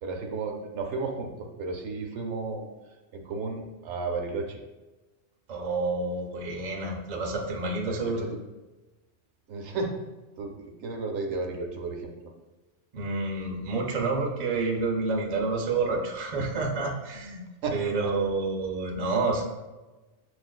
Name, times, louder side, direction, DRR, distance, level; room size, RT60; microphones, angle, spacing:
voice 1, 0.0-2.7 3.1-4.6 7.9-8.4 9.5-9.9 10.4-12.1 17.6-18.1, right 3 dB, 75° right, 3 dB, 0.9 m, -33 dB
voice 2, 5.5-8.2 12.9-17.4 17.7-19.4, right 3 dB, 45° right, 0 dB, 0.6 m, -29 dB
6.6 x 2.4 x 2.2 m, 1.1 s
omnidirectional pair, 1.2 m